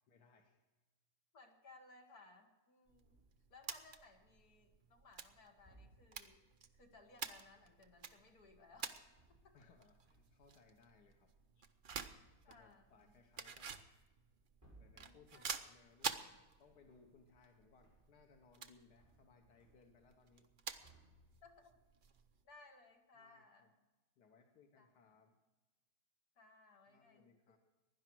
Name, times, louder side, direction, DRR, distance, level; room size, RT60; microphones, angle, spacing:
voice 1, 0.1-0.6 9.5-11.3 12.5-13.9 14.8-16.2 16.6-20.5 23.1-23.7 24.2-25.4 26.9-27.6, left 5 dB, 90° left, 3 dB, 1.7 m, -67 dB
voice 2, 1.3-3.2 3.5-6.4 6.7-9.6 11.6-11.7 12.4-13.1 14.9-15.5 21.4-21.8 22.4-23.7 24.8-24.9 26.4-27.6, left 3 dB, 70° left, 2 dB, 2.3 m, -63 dB
sound 1, 2.9-22.4, right 6 dB, 45° right, 0.7 m, -51 dB
sound 2, 3.0-3.5 4.3-4.8 5.6-6.3 8.9-9.8 10.0-10.6 11.4-16.0 16.3-17.5 17.8-18.3 18.6-20.2 20.5-21.6, right 2 dB, 10° right, 6.6 m, -69 dB
16.0 x 11.0 x 6.1 m, 1.2 s
omnidirectional pair, 1.7 m